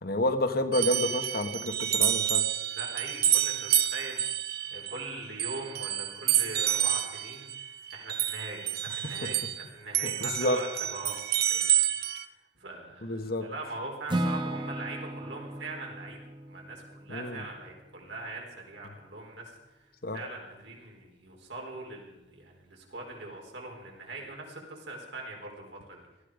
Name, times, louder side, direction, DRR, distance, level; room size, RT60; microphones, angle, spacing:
voice 1, 0.0-2.5 10.0-10.6 13.0-13.5 17.1-17.4 20.0-20.2, left 1 dB, 55° left, 7 dB, 1.3 m, -29 dB
sound 1, 0.7-9.6 9.9-12.2, right 11 dB, 55° right, 0.8 m, -29 dB
voice 2, 2.7-4.3 4.7-11.8 12.1-16.2 16.5-26.1, right 2 dB, 70° right, 0 dB, 4.4 m, -42 dB
Acoustic guitar / Strum, 14.1-18.1, right 1 dB, 25° right, 1.0 m, -35 dB
18.5 x 13.5 x 5.1 m, 1.0 s
head